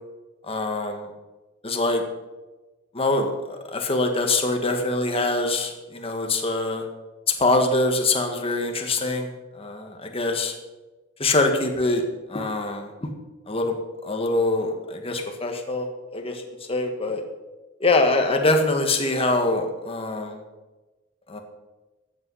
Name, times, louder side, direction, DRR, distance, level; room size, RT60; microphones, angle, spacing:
voice 1, 0.5-1.1 1.6-2.0 2.9-3.3 3.7-6.8 7.4-9.3 9.6-10.5 11.2-12.0 12.3-13.1 13.5-13.7 14.0-15.9 16.1-16.3 16.7-17.2 17.8-20.4 21.3-21.4, left 2 dB, 30° left, 4 dB, 1.6 m, -23 dB
14.5 x 9.1 x 5.6 m, 1.2 s
head